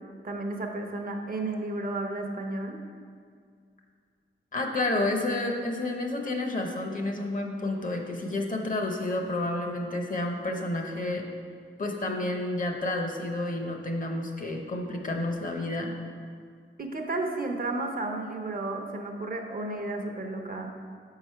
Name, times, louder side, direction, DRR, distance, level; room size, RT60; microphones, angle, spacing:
voice 1, 0.2-2.8 16.8-20.8, right 2 dB, 45° right, 3 dB, 0.7 m, -32 dB
voice 2, 4.5-11.3 11.8-15.9, left 2 dB, 40° left, 2 dB, 0.8 m, -30 dB
5.2 x 4.8 x 5.6 m, 2.1 s
wide cardioid pair, 90°, 21 cm